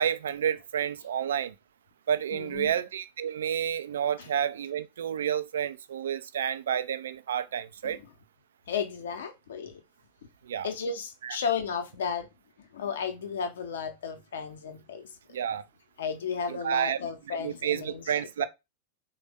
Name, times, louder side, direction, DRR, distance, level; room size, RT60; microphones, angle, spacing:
voice 1, 0.0-1.5 2.1-8.0 10.5-10.7 11.2-11.4 15.3-15.6 16.5-17.0 17.4-18.4, right 9 dB, 65° right, 0.3 m, -30 dB
voice 2, 2.3-2.7 4.2-4.3 7.8-8.0 8.7-9.8 10.6-12.3 12.6-15.4 16.0-18.1 18.4-18.5, left 6 dB, 65° left, 0.6 m, -34 dB
3.3 x 2.1 x 3.4 m
figure-of-eight pair, 90°, 0 cm